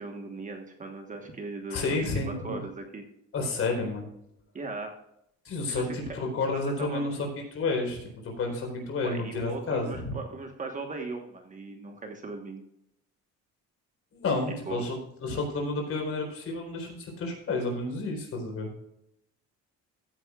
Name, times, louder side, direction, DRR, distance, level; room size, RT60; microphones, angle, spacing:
voice 1, 0.0-1.8 2.3-3.0 4.5-5.0 5.7-5.8 6.5-7.1 9.0-12.6 14.7-14.8, right 3 dB, 25° right, 4 dB, 1.3 m, -38 dB
voice 2, 1.7-2.6 3.3-4.1 5.4-10.1 14.1-18.7, left 3 dB, 45° left, 2 dB, 4.2 m, -31 dB
15.0 x 9.7 x 2.4 m, 0.78 s
cardioid pair, 155°, 31 cm